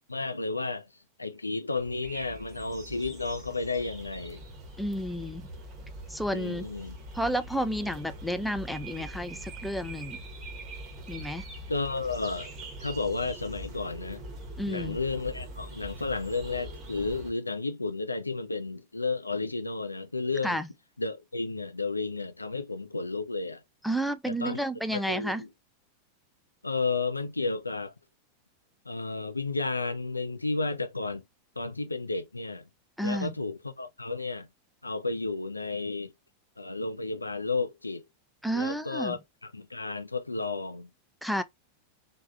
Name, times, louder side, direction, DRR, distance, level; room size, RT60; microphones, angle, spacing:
voice 1, 0.1-0.9 1.2-4.4 6.3-7.0 11.7-12.5 12.8-14.2 14.7-20.6 21.0-23.6 24.3-24.6 24.9-25.5 26.6-27.9 28.9-31.2 31.6-32.6 33.0-34.5 34.8-36.1 36.6-38.1 38.5-39.2 39.5-40.9, left 3 dB, 80° left, 0.4 m, -32 dB
sound 1, 1.8-17.3, right 1 dB, 25° right, 0.9 m, -43 dB
voice 2, 4.8-5.5 6.1-6.7 7.1-10.2 11.1-11.4 14.6-15.0 20.4-20.7 23.8-25.4 33.0-33.3 38.4-39.2 41.2-41.4, equal, ahead, 0.3 m, -31 dB
3.3 x 2.1 x 2.4 m
figure-of-eight pair, 90°, 0 cm